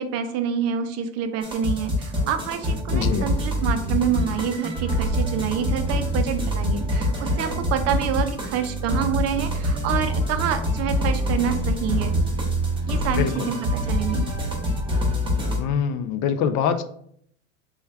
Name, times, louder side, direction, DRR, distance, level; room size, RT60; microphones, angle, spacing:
voice 1, 0.0-12.1 12.9-14.3, right 8 dB, 40° right, 8 dB, 0.5 m, -27 dB
sound 1, 1.4-15.6, equal, 15° right, 1.0 m, -25 dB
voice 2, 2.9-3.3 13.1-13.5 15.6-16.8, left 7 dB, 50° left, 10 dB, 0.4 m, -24 dB
3.2 x 2.3 x 4.3 m, 0.66 s
hypercardioid pair, 85°, 38 cm